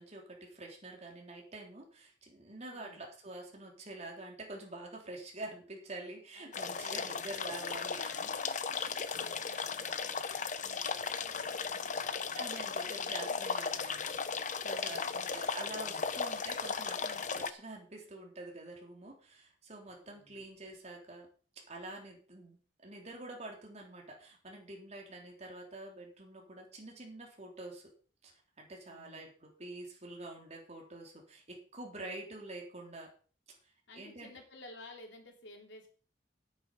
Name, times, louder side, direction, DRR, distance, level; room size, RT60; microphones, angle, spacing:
voice 1, 0.0-8.3 12.4-14.2 14.6-21.3 21.7-27.8 28.2-28.3 28.6-33.1 33.5-33.6 33.9-34.3, right 2 dB, 40° right, 0 dB, 3.6 m, -47 dB
voice 2, 2.7-3.1 6.3-7.2 7.5-11.2 11.5-13.4 14.7-15.4 15.9-16.2 20.0-20.5 28.9-29.3 33.9-35.9, left 2 dB, 80° left, 2 dB, 3.3 m, -55 dB
sound 1, 6.5-17.5, left 5 dB, 45° left, 0.9 m, -36 dB
11.0 x 9.1 x 5.5 m, 0.40 s
head